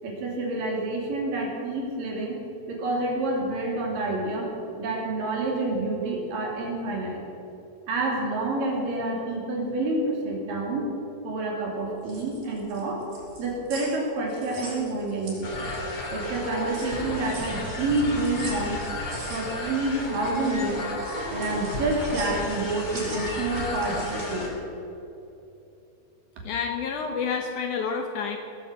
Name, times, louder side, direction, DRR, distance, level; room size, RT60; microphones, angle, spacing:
voice 1, 0.0-2.4 2.7-4.5 4.8-7.2 7.9-10.8 11.2-13.0 13.4-15.6 16.1-18.8 19.3-20.9 21.3-24.6, right 2 dB, 65° right, -1 dB, 4.3 m, -28 dB
sound 1, 11.9-16.0 16.4-24.5, right 2 dB, 80° right, 6.9 m, -43 dB
sound 2, 15.4-24.5, left 1 dB, 35° left, 3.1 m, -33 dB
voice 2, 26.4-28.4, left 6 dB, 70° left, 4 dB, 2.0 m, -29 dB
18.5 x 8.5 x 7.9 m, 2.8 s
omnidirectional pair, 4.3 m